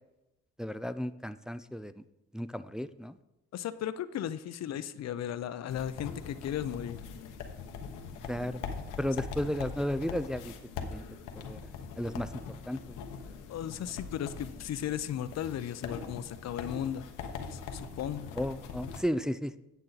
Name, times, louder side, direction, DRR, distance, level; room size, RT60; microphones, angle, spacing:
voice 1, 0.6-2.0 2.3-3.2 8.2-8.6 9.0-11.0 11.4-11.6 12.0-12.3 12.7-13.0 13.3-13.4 18.4-19.6, equal, ahead, 12 dB, 0.3 m, -34 dB
voice 2, 3.5-7.0 13.5-17.1 17.5-18.3, left 10 dB, 60° left, 14 dB, 0.6 m, -36 dB
sound 1, 5.7-19.0, left 5 dB, 90° left, 1.1 m, -42 dB
9.0 x 7.3 x 4.0 m, 0.94 s
cardioid pair, 90°, 30 cm